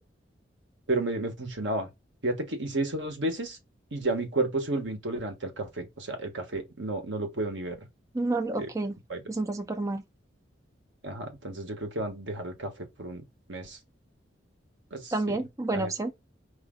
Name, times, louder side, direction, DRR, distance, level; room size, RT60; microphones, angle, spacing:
voice 1, 0.9-1.9 2.2-3.6 3.9-7.8 8.6-8.7 9.1-9.2 11.0-13.2 13.5-13.8 14.9-15.4 15.7-15.9, right 2 dB, 80° right, 1.3 m, -32 dB
voice 2, 8.1-9.0 9.3-10.0 15.1-16.1, right 2 dB, 15° right, 0.5 m, -29 dB
4.9 x 2.7 x 3.8 m
head